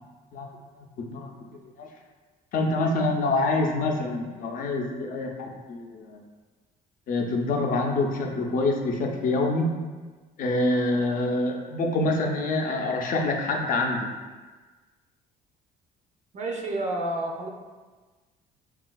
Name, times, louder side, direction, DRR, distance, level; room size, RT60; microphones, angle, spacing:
voice 1, 0.8-1.3 1.8-1.9 2.5-6.2 7.1-9.7 10.4-14.1, left 2 dB, 55° left, 1 dB, 0.5 m, -26 dB
voice 2, 16.3-17.5, right 1 dB, 45° right, 1 dB, 0.4 m, -29 dB
3.4 x 2.3 x 2.2 m, 1.3 s
cardioid pair, 110°, 17 cm